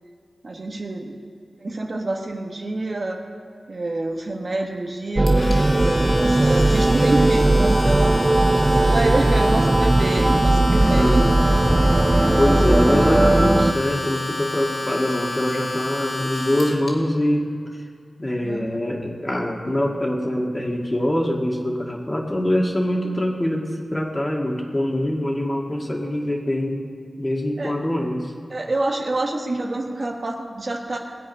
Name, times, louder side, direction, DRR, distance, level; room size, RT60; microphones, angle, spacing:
voice 1, 0.4-1.2 1.6-3.2 3.7-8.3 8.7-11.2 11.8-12.5 18.4-18.8 27.6-27.8 28.5-31.0, right 2 dB, 45° right, 2 dB, 1.3 m, -27 dB
sound 1, 5.1-13.7, right 2 dB, 25° right, 0.3 m, -18 dB
Domestic sounds home sounds, 5.3-16.9, left 2 dB, 60° left, 2.4 m, -31 dB
sound 2, 10.7-14.0, equal, ahead, 2.4 m, -27 dB
voice 2, 11.0-11.5 12.4-17.5 18.2-26.8 27.2-28.3, left 1 dB, 20° left, -1 dB, 2.0 m, -24 dB
20.5 x 8.3 x 5.4 m, 2.2 s
wide cardioid pair, 100°, 0 cm